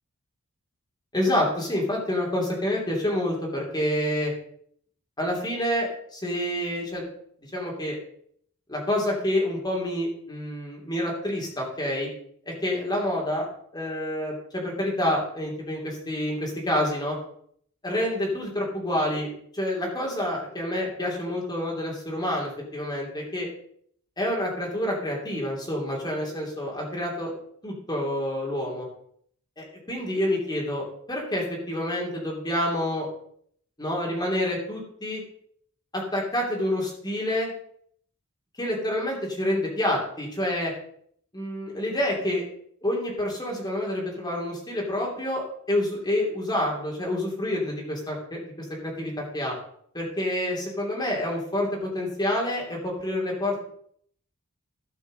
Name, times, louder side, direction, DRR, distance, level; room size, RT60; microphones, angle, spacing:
voice 1, 1.1-4.3 5.2-7.0 7.5-8.0 8.7-12.1 12.5-13.5 13.7-17.2 17.8-19.3 19.5-23.5 24.2-27.3 27.6-28.9 29.6-33.1 33.8-35.2 35.9-37.5 38.6-40.7 41.3-42.4 42.8-48.4 48.8-49.5 49.9-53.6, left 1 dB, 20° left, -2 dB, 2.9 m, -28 dB
13.0 x 5.4 x 6.3 m, 0.65 s
head